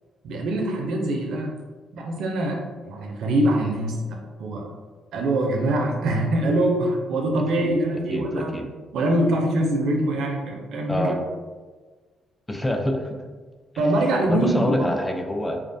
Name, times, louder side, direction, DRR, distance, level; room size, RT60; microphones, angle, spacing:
voice 1, 0.2-1.6 1.9-4.7 5.1-8.6 8.9-11.2 13.8-14.9, right 1 dB, 80° right, 1 dB, 0.4 m, -24 dB
voice 2, 8.1-8.6 10.9-11.2 12.5-13.2 14.3-15.6, left 1 dB, 15° left, 3 dB, 0.3 m, -26 dB
2.3 x 2.2 x 2.5 m, 1.4 s
cardioid pair, 90°, 0 cm